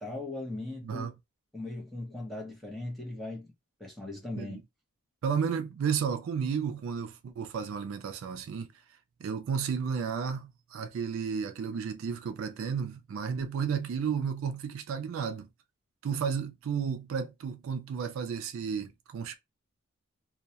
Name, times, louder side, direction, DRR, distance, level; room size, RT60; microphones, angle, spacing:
voice 1, 0.0-1.1 1.5-3.5 3.8-4.6, left 2 dB, ahead, 0.7 m, -38 dB
voice 2, 5.2-8.7 9.2-15.5 16.0-19.3, right 6 dB, 65° right, 0.3 m, -32 dB
2.2 x 2.1 x 2.7 m
head